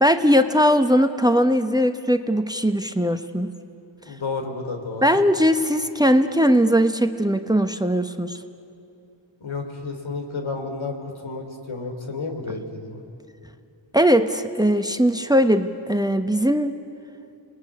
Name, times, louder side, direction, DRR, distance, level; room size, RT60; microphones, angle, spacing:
voice 1, 0.0-3.5 5.0-8.4 13.9-16.7, equal, 10° right, 8 dB, 1.1 m, -19 dB
voice 2, 4.0-5.2 9.4-11.0 11.2-13.0, left 3 dB, 80° left, 5 dB, 3.3 m, -31 dB
28.5 x 20.5 x 9.8 m, 2.7 s
cardioid pair, 55°, 47 cm